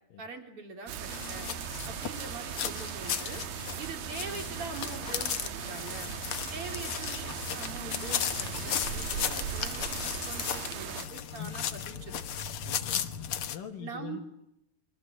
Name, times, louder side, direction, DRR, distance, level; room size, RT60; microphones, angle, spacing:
voice 1, 0.2-1.5 1.8-3.4 3.8-6.1 6.5-12.2 13.8-14.2, right 4 dB, 40° right, 4 dB, 4.5 m, -43 dB
sound 1, 0.9-11.1, right 9 dB, 85° right, 3.1 m, -38 dB
sound 2, 1.1-13.6, left 9 dB, 60° left, 1.5 m, -35 dB
voice 2, 12.6-13.1 13.5-14.2, left 8 dB, 75° left, 1 dB, 3.4 m, -43 dB
28.0 x 24.0 x 7.8 m, 0.80 s
omnidirectional pair, 3.9 m